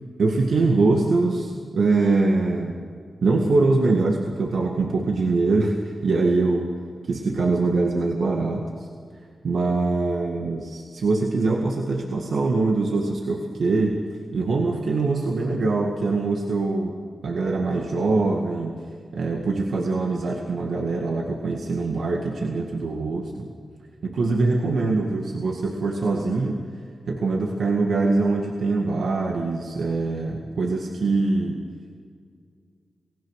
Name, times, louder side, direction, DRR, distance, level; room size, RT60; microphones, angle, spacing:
voice 1, 0.2-2.8 3.2-6.7 7.0-8.9 9.4-14.0 14.3-17.0 17.2-18.8 19.1-23.5 24.0-26.7 27.1-31.6, right 3 dB, 80° right, 0 dB, 1.9 m, -23 dB
28.5 x 16.5 x 6.5 m, 2.1 s
cardioid pair, 55°, 0 cm